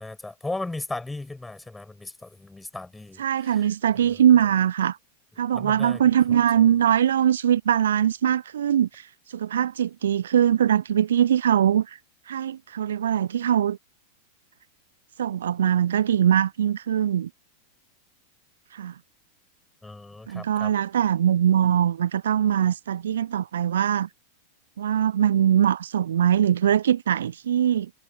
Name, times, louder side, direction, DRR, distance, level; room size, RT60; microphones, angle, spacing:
voice 1, 0.0-3.7 4.0-4.3 5.5-6.0 6.3-6.7 19.8-20.7, left 2 dB, 5° left, 5.9 m, -37 dB
voice 2, 3.2-5.0 5.4-12.0 12.3-13.8 15.2-17.3 18.7-18.9 20.3-24.1 24.8-27.9, right 9 dB, 65° right, 0.3 m, -22 dB
figure-of-eight pair, 90°, 0 cm